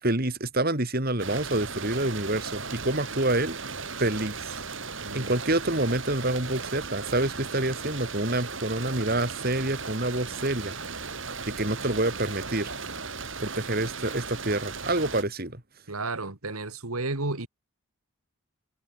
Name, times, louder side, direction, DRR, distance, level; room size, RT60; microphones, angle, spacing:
voice 1, 0.0-3.6 4.0-4.6 5.1-10.7 11.4-12.7 13.4-15.6, right 1 dB, 45° right, 3.3 m, -27 dB
sound 1, 1.2-15.2, right 4 dB, 60° right, 4.5 m, -36 dB
voice 2, 15.9-17.5, right 3 dB, 90° right, 2.6 m, -32 dB
open air
head